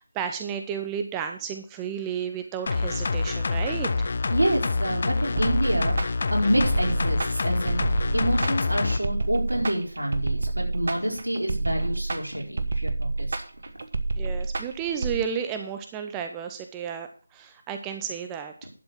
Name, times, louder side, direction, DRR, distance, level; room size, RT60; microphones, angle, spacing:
voice 1, 0.0-4.1 14.2-18.7, right 8 dB, 10° right, 6 dB, 0.6 m, -32 dB
sound 1, 2.7-9.0 9.3-9.4, left 3 dB, 40° left, 0.7 m, -26 dB
voice 2, 4.3-13.4, equal, 75° right, 0 dB, 4.2 m, -27 dB
sound 2, 5.4-15.2, right 3 dB, 45° right, 1.2 m, -29 dB
11.0 x 7.1 x 5.8 m, 0.39 s
figure-of-eight pair, 160°, 0 cm